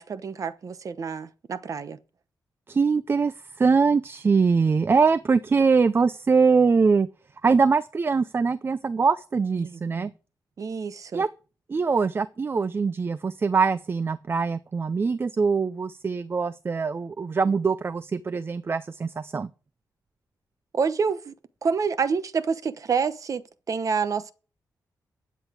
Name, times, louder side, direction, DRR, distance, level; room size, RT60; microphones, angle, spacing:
voice 1, 0.0-2.0 9.6-10.1 10.6-11.2 20.7-21.3 21.6-23.4 23.7-24.3, right 5 dB, 50° right, 0.9 m, -28 dB
voice 2, 2.7-7.1 7.4-10.1 11.1-11.3 11.7-19.5, right 5 dB, 35° right, 0.5 m, -23 dB
12.5 x 8.2 x 5.0 m
wide cardioid pair, 120°, 7 cm